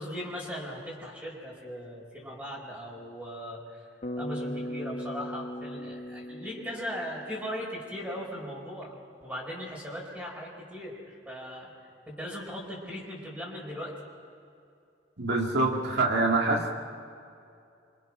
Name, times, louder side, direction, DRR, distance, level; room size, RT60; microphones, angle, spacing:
voice 1, 0.0-3.9 4.2-11.7 12.1-13.9, equal, 10° right, -4 dB, 4.9 m, -38 dB
Bass guitar, 4.0-8.1, equal, 40° left, 1.3 m, -39 dB
voice 2, 15.2-16.8, right 2 dB, 60° right, 1 dB, 2.3 m, -25 dB
27.5 x 25.5 x 6.2 m, 2.6 s
head